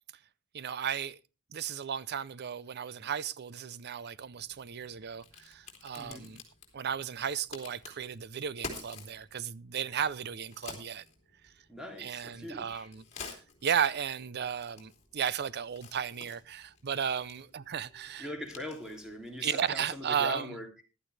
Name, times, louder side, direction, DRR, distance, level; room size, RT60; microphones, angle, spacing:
voice 1, 0.5-1.2 1.5-6.4 6.7-11.0 12.0-13.0 13.6-18.3 19.4-20.6, right 8 dB, 50° right, 0.5 m, -34 dB
Crack, 4.2-20.3, left 4 dB, 35° left, 3.3 m, -50 dB
voice 2, 6.0-6.3 11.7-12.9 18.2-20.8, left 1 dB, 5° right, 2.9 m, -41 dB
15.0 x 11.5 x 3.3 m
head